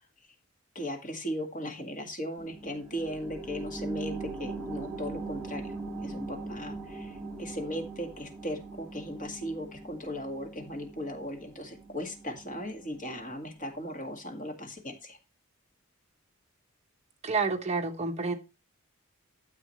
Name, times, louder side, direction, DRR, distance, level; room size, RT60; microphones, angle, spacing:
voice 1, 0.8-15.2, equal, 35° left, 1.9 m, -37 dB
sound 1, 2.4-13.5 13.9-14.0, right 3 dB, 5° right, 3.1 m, -41 dB
voice 2, 17.2-18.3, right 4 dB, 30° right, 1.1 m, -29 dB
13.0 x 7.3 x 3.1 m
head